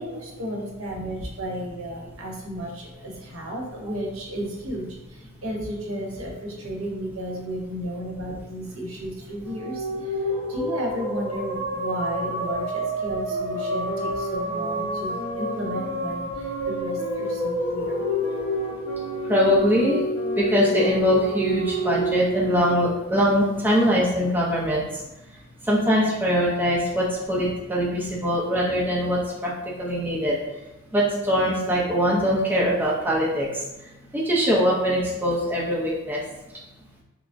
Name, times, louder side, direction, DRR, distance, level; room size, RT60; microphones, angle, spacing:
voice 1, 0.0-18.4 28.0-28.1, equal, 70° right, -1 dB, 0.9 m, -33 dB
sound 1, 9.3-23.8, equal, 10° left, 0.9 m, -29 dB
sound 2, 13.3-23.3, equal, 55° left, 0.5 m, -36 dB
voice 2, 19.2-20.0 20.4-25.0 25.6-30.4 30.9-36.2, equal, 10° right, -5 dB, 0.6 m, -22 dB
5.6 x 2.0 x 2.6 m, 1.0 s
head